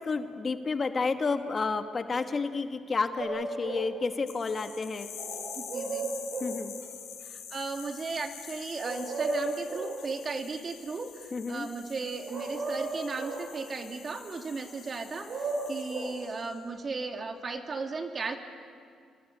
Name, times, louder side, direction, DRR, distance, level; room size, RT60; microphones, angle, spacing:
voice 1, 0.0-5.1 6.4-6.7 11.3-11.7, left 4 dB, 35° left, 7 dB, 1.6 m, -31 dB
sound 1, 3.2-3.9 5.2-6.6 8.8-10.0 12.3-13.5 15.0-16.2, right 3 dB, 55° right, 7.7 m, -34 dB
sound 2, 4.3-16.6, left 8 dB, 85° left, 5.5 m, -46 dB
voice 2, 5.5-6.1 7.2-18.4, right 4 dB, 40° right, 5 dB, 2.6 m, -36 dB
26.5 x 24.5 x 8.5 m, 2.3 s
cardioid pair, 90°, 0 cm